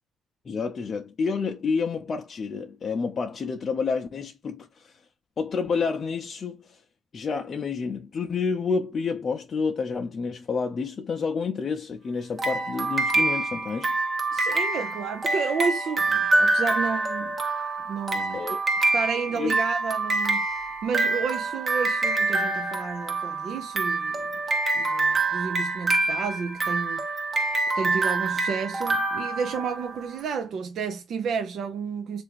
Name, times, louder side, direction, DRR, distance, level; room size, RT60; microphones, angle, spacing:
voice 1, 0.4-5.0 5.4-6.8 7.1-14.0 18.3-18.6 19.3-19.6, left 5 dB, 45° left, 0.5 m, -29 dB
sound 1, 12.4-30.1, right 3 dB, 35° right, 0.8 m, -26 dB
voice 2, 14.3-17.4 17.9-18.4 18.9-20.5 20.8-24.3 24.7-27.0 27.8-32.2, right 6 dB, 65° right, 0.5 m, -31 dB
3.4 x 2.5 x 4.5 m
cardioid pair, 90°, 0 cm